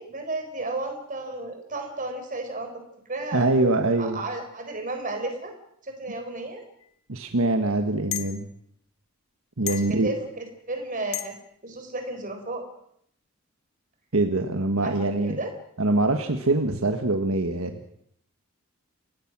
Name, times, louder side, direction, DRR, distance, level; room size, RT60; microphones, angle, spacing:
voice 1, 0.0-3.5 4.0-5.5 5.8-6.6 9.7-11.4 11.6-12.6 14.8-15.5, right 2 dB, 40° right, 5 dB, 4.3 m, -33 dB
voice 2, 3.3-4.2 7.1-8.5 9.6-10.1 14.1-15.4 15.8-17.8, right 2 dB, 75° right, 6 dB, 1.5 m, -24 dB
sound 1, 6.8-6.9 8.1-8.3 9.7-10.0 11.1-11.4, left 13 dB, 75° left, 1.4 m, -31 dB
29.0 x 16.5 x 6.1 m, 0.70 s
head